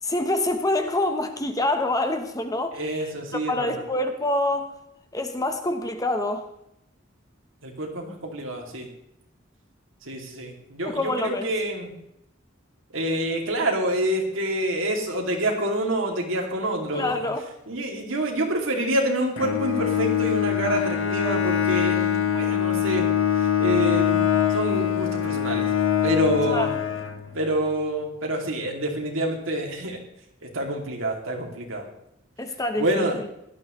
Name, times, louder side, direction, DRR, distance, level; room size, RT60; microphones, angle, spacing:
voice 1, 0.0-3.1 3.5-4.7 5.1-6.5 10.8-11.5 16.9-17.5 26.5-26.7 32.4-33.3, left 2 dB, 20° left, 7 dB, 1.0 m, -26 dB
voice 2, 2.7-3.8 7.6-8.9 10.1-11.9 12.9-17.2 17.7-23.1 23.6-24.2 24.5-25.7 26.0-26.7 27.3-30.0 30.4-31.9 32.8-33.1, right 1 dB, 90° right, 1 dB, 2.6 m, -27 dB
Bowed string instrument, 19.4-27.6, left 9 dB, 85° left, 1.2 m, -23 dB
16.5 x 12.5 x 3.2 m, 0.78 s
head